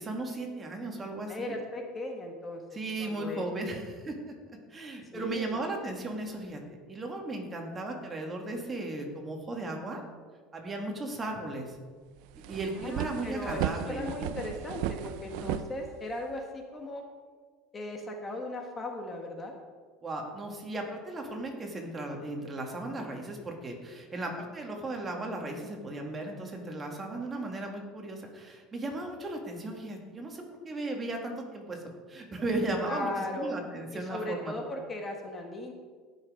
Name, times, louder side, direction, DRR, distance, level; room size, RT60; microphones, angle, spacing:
voice 1, 0.0-1.6 2.7-4.3 4.7-10.0 10.5-11.8 12.5-14.1 15.4-15.6 20.0-31.8 32.1-34.6, right 2 dB, 20° right, 1 dB, 2.2 m, -36 dB
voice 2, 1.3-3.4 5.1-5.6 12.8-17.0 17.7-19.5 32.8-33.6 33.9-35.7, left 2 dB, 25° left, 2 dB, 1.5 m, -37 dB
sound 1, 11.8-11.9 12.2-16.4, right 12 dB, 70° right, 0.5 m, -35 dB
16.5 x 6.5 x 5.1 m, 1.5 s
supercardioid pair, 115°, 0 cm